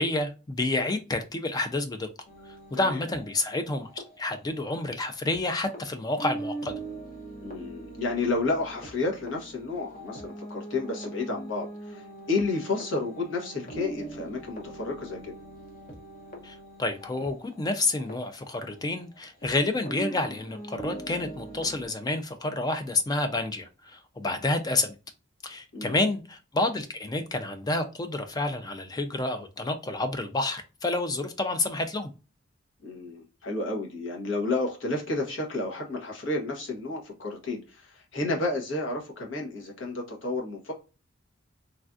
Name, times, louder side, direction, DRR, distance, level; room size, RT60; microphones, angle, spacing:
voice 1, 0.0-2.1 2.7-6.7 16.4-24.9 25.4-32.1, left 2 dB, 20° left, 0.3 m, -29 dB
sound 1, 2.3-5.4 5.7-5.8 6.2-19.5 19.9-21.9, right 2 dB, 45° left, 0.9 m, -42 dB
voice 2, 7.4-15.3 25.7-26.0 32.8-40.7, left 3 dB, 65° left, 1.0 m, -31 dB
3.2 x 2.3 x 2.4 m
head